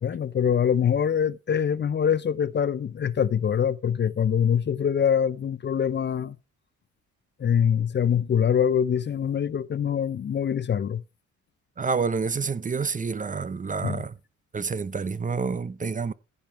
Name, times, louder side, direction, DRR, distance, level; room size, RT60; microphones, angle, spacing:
voice 1, 0.0-6.4 7.4-11.0 13.8-14.0, left 8 dB, 35° left, 0.6 m, -24 dB
voice 2, 11.8-14.1 14.5-16.1, right 5 dB, 25° right, 0.7 m, -28 dB
15.0 x 5.5 x 4.5 m
cardioid pair, 90°, 30 cm